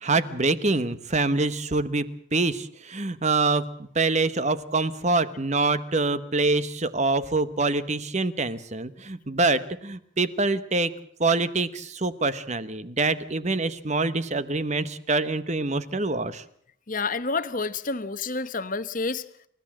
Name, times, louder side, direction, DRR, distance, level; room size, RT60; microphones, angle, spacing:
voice 1, 0.0-10.9 11.2-16.4, right 3 dB, 35° right, 14 dB, 1.1 m, -25 dB
voice 2, 16.9-19.3, left 4 dB, 40° left, 13 dB, 1.1 m, -29 dB
29.0 x 14.0 x 7.5 m, 0.67 s
head